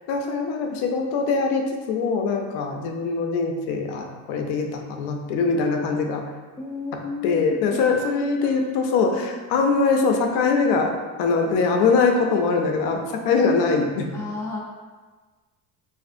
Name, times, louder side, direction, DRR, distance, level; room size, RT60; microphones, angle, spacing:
voice 1, 0.1-6.2 7.2-10.9 11.2-14.1, left 4 dB, 75° left, 3 dB, 0.6 m, -22 dB
voice 2, 6.6-8.8 9.1-9.4 14.1-14.6, left 3 dB, 5° left, -4 dB, 0.4 m, -33 dB
3.4 x 2.5 x 2.5 m, 1.3 s
cardioid pair, 120°, 39 cm